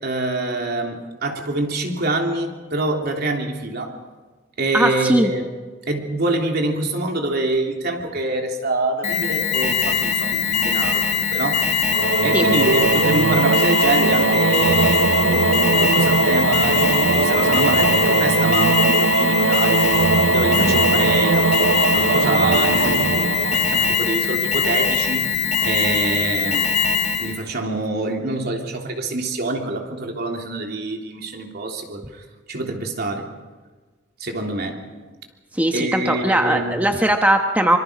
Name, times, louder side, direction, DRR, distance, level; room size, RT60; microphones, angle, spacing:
voice 1, 0.0-4.0 4.6-5.4 5.9-11.9 12.2-19.9 20.3-25.3 25.6-26.8 27.2-33.3 34.2-34.8 35.7-36.7, right 2 dB, 55° right, 1 dB, 3.3 m, -25 dB
voice 2, 4.7-5.3 12.3-12.5 20.6-20.9 35.5-37.8, right 1 dB, 10° right, 4 dB, 1.1 m, -19 dB
Alarm, 9.0-27.4, left 6 dB, 35° left, 1.6 m, -22 dB
Singing / Musical instrument, 11.9-24.4, right 4 dB, 75° right, 0.7 m, -20 dB
25.5 x 24.5 x 5.1 m, 1.3 s
head